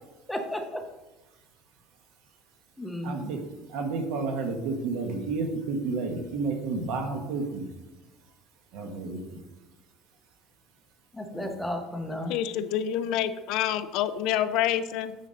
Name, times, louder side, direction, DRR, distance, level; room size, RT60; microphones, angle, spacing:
voice 1, 0.3-0.8 2.8-3.2 11.1-12.3, left 1 dB, 5° left, 4 dB, 0.7 m, -33 dB
voice 2, 3.0-3.4 3.7-7.6 8.7-9.4 11.3-11.5, right 3 dB, 60° right, 4 dB, 1.4 m, -31 dB
voice 3, 12.3-15.2, left 10 dB, 55° left, 12 dB, 0.4 m, -27 dB
9.3 x 4.1 x 5.2 m, 1.1 s
cardioid pair, 175°, 0 cm